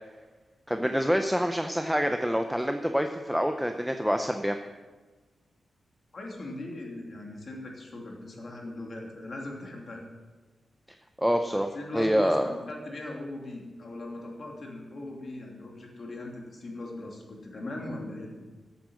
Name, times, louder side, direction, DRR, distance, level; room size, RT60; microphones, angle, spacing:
voice 1, 0.7-4.6 11.2-11.7 11.9-12.5, equal, ahead, 5 dB, 0.6 m, -26 dB
voice 2, 6.1-10.0 11.5-18.5, left 2 dB, 40° left, 0 dB, 2.8 m, -39 dB
14.5 x 8.4 x 6.4 m, 1.3 s
wide cardioid pair, 145°, 0 cm